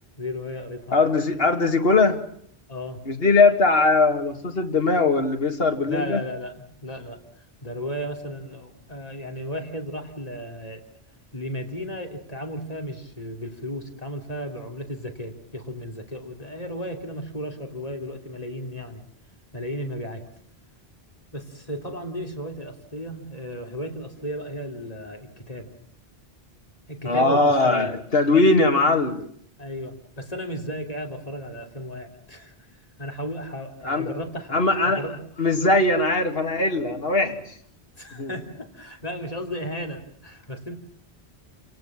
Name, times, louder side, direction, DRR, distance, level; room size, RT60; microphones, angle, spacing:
voice 1, 0.2-0.9 2.7-3.0 5.9-10.8 11.3-19.0 19.5-20.2 21.3-25.7 26.9-27.9 29.6-35.1 37.9-40.8, equal, 35° left, 3 dB, 3.3 m, -34 dB
voice 2, 0.9-2.2 3.1-6.2 27.1-29.2 33.8-34.1 34.5-35.0 35.4-37.6 38.1-38.3, left 3 dB, 65° left, 5 dB, 2.4 m, -20 dB
29.0 x 18.5 x 7.5 m, 0.66 s
omnidirectional pair, 1.1 m